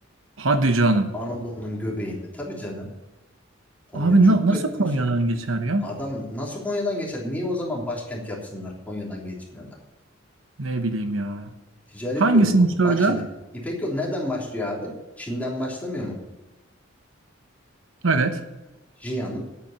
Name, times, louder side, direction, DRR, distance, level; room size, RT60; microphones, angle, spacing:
voice 1, 0.4-1.1 3.9-5.9 10.6-11.5 12.2-13.2 18.0-18.4, right 2 dB, 80° right, 8 dB, 1.1 m, -20 dB
voice 2, 1.1-2.9 3.9-4.9 5.8-9.8 11.9-13.2 13.6-16.2 19.0-19.4, left 1 dB, 10° left, -4 dB, 3.3 m, -30 dB
10.5 x 8.9 x 7.3 m, 1.0 s
head